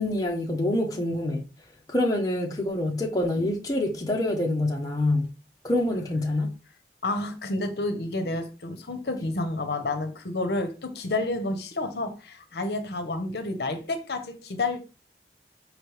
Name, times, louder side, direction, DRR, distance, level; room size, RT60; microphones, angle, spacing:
voice 1, 0.0-1.4 1.9-5.2 5.6-6.5, left 1 dB, 20° left, 0.7 m, -26 dB
voice 2, 7.0-14.8, left 2 dB, 65° left, 0.7 m, -30 dB
5.1 x 3.2 x 3.1 m
head